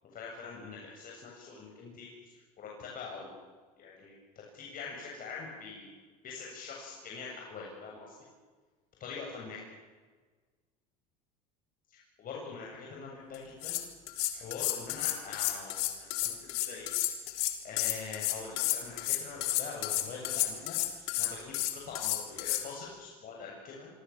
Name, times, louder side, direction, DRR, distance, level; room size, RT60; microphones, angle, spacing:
voice 1, 0.0-3.4 3.8-5.9 6.2-8.1 9.0-9.6 11.9-13.8 14.3-16.9 17.6-23.9, left 5 dB, 45° left, -2 dB, 7.9 m, -44 dB
sound 1, 13.3-13.4 13.6-22.6, left 16 dB, 75° left, 3.7 m, -31 dB
26.5 x 25.0 x 7.4 m, 1.4 s
hypercardioid pair, 85°, 20 cm